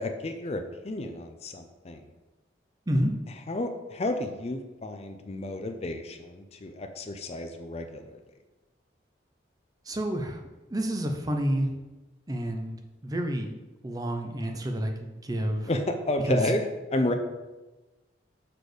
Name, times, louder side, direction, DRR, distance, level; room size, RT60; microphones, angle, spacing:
voice 1, 0.0-2.0 3.5-8.2 15.6-17.1, left 1 dB, 35° left, 7 dB, 0.5 m, -31 dB
voice 2, 9.9-10.4 10.7-11.7 12.3-13.5 13.8-15.7 16.3-16.4 17.1-17.2, equal, 20° right, 4 dB, 0.6 m, -29 dB
6.5 x 4.2 x 4.9 m, 1.1 s
head